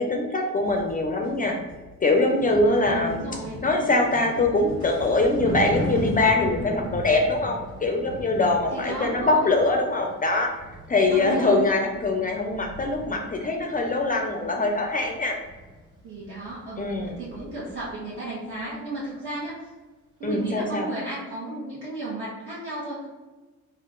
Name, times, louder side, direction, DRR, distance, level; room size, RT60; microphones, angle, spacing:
voice 1, 0.0-1.6 2.0-3.2 3.6-15.4 16.8-17.1 20.2-20.9, left 2 dB, 30° left, 2 dB, 0.5 m, -23 dB
sound 1, 0.7-6.2, left 1 dB, 70° right, 1.4 m, -42 dB
voice 2, 2.6-3.6 8.7-9.5 11.1-11.6 16.0-19.6 20.2-23.1, right 1 dB, 45° right, -9 dB, 1.4 m, -34 dB
Thunder, 3.5-18.1 18.4-18.7, equal, 15° right, 1.5 m, -38 dB
3.6 x 2.4 x 3.8 m, 1.3 s
cardioid pair, 90°, 30 cm